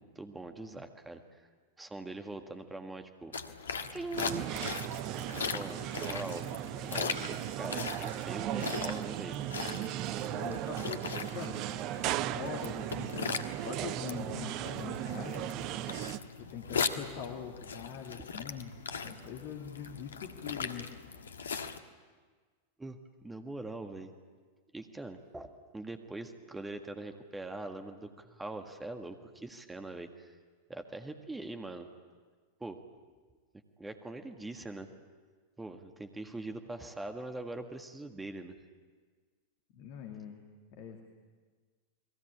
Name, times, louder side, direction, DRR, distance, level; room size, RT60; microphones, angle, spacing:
voice 1, 0.0-1.4 1.8-3.3 3.9-4.6 5.5-6.5 6.9-9.4 22.8-23.0 23.2-24.1 24.7-25.5 25.7-30.3 30.7-31.9 32.6-32.8 33.8-34.9 35.6-38.6, right 2 dB, 10° right, 6 dB, 1.8 m, -42 dB
sound 1, 3.3-21.8, left 6 dB, 70° left, 1.5 m, -40 dB
sound 2, 4.2-16.2, right 13 dB, 40° right, 0.8 m, -37 dB
voice 2, 10.3-11.6 12.3-15.5 16.4-18.7 19.0-20.9 39.7-40.4 40.7-41.0, left 7 dB, 45° left, 3 dB, 2.5 m, -43 dB
30.0 x 21.5 x 8.6 m, 1.5 s
figure-of-eight pair, 90°, 0 cm